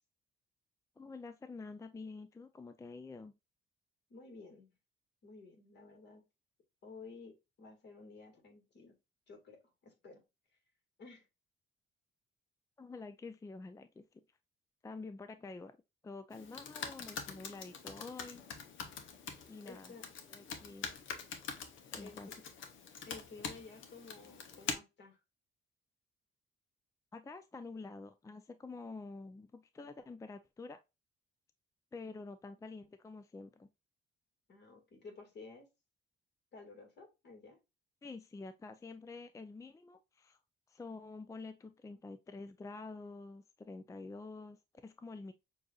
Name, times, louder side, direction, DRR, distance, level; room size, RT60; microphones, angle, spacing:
voice 1, 1.0-3.3 12.8-14.2 14.8-15.8 16.0-18.4 19.5-19.9 20.3-20.9 21.9-22.4 27.1-30.8 31.9-33.7 38.0-40.4 40.7-45.3, left 3 dB, 15° left, 0.4 m, -48 dB
voice 2, 4.1-4.7 5.2-6.2 6.8-9.0 9.3-10.2 11.0-11.3 19.6-20.1 22.0-22.3 23.1-25.2 32.1-32.2 34.5-35.7 36.5-37.6, left 4 dB, 60° left, 2.1 m, -53 dB
Computer keyboard, 16.3-24.7, left 6 dB, 75° left, 0.8 m, -45 dB
6.2 x 2.6 x 2.3 m
cardioid pair, 90°, 20 cm